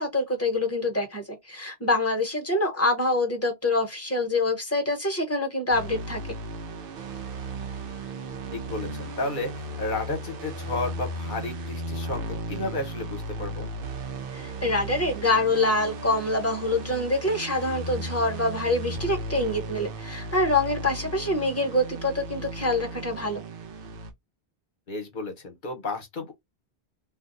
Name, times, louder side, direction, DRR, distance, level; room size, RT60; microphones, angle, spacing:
voice 1, 0.0-6.3 14.3-23.4, left 2 dB, 15° left, 0.8 m, -25 dB
sound 1, 5.7-24.1, right 1 dB, 60° right, 0.8 m, -36 dB
voice 2, 8.5-13.7 24.9-26.3, left 2 dB, 50° left, 1.0 m, -32 dB
2.5 x 2.2 x 3.7 m
omnidirectional pair, 1.1 m